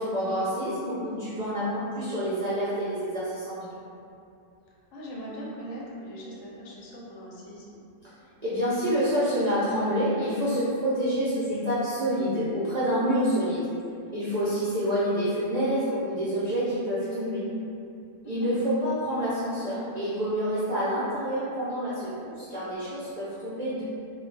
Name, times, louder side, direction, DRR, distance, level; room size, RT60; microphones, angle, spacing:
voice 1, 0.0-3.8 8.4-13.6 14.1-17.4 18.2-23.8, equal, 60° right, -12 dB, 0.4 m, -27 dB
voice 2, 4.9-7.8 18.2-18.5, equal, 80° left, -4 dB, 1.0 m, -40 dB
2.3 x 2.1 x 3.1 m, 2.6 s
omnidirectional pair, 1.4 m